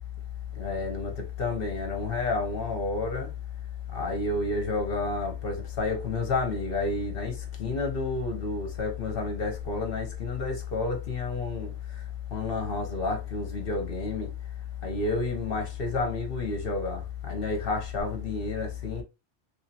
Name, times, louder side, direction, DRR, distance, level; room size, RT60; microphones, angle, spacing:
voice 1, 0.5-3.3 3.9-11.7 12.3-14.3 14.8-19.0, left 3 dB, 55° left, 1.1 m, -30 dB
3.1 x 2.8 x 2.8 m
omnidirectional pair, 1.2 m